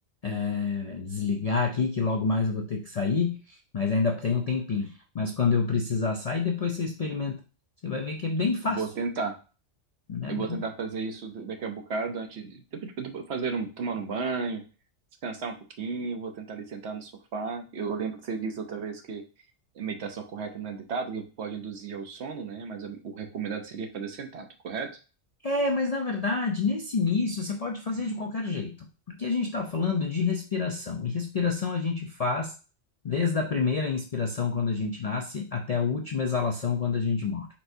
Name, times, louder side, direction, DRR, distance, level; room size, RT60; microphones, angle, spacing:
voice 1, 0.2-7.4 7.8-8.8 10.1-10.6 25.4-28.8 29.2-32.5 33.0-37.5, left 4 dB, 55° left, 2 dB, 0.4 m, -28 dB
voice 2, 8.7-9.4 10.3-14.6 15.2-19.2 19.7-24.9, right 5 dB, 65° right, 5 dB, 1.0 m, -34 dB
4.5 x 4.2 x 2.6 m, 0.34 s
omnidirectional pair, 1.2 m